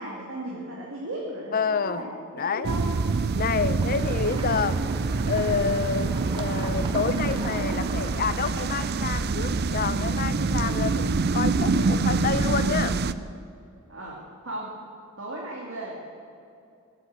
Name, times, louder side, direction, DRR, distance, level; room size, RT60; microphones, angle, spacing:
voice 1, 0.0-2.9 3.4-3.7 13.9-14.2 14.4-14.7 15.2-16.0, right 1 dB, 75° right, -4 dB, 2.4 m, -36 dB
voice 2, 1.5-2.0 2.3-2.7 3.4-4.8 5.3-13.0, left 5 dB, 45° left, 13 dB, 0.6 m, -28 dB
sound 1, 2.6-13.1, right 4 dB, 50° right, 0.5 m, -26 dB
sound 2, 3.8-9.3, right 1 dB, 25° right, 1.2 m, -40 dB
16.5 x 8.5 x 8.1 m, 2.5 s
head